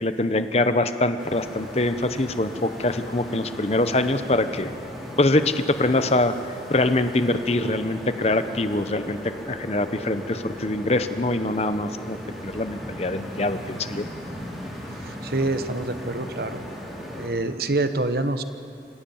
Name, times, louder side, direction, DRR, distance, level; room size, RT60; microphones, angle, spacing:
voice 1, 0.0-4.7 5.2-6.4 6.7-12.2 12.4-14.1, left 2 dB, 35° left, 10 dB, 0.9 m, -24 dB
sound 1, 1.2-17.3, equal, ahead, 4.5 m, -37 dB
voice 2, 15.0-16.6 17.1-18.4, right 2 dB, 55° right, 10 dB, 1.0 m, -26 dB
26.5 x 16.0 x 7.2 m, 2.6 s
head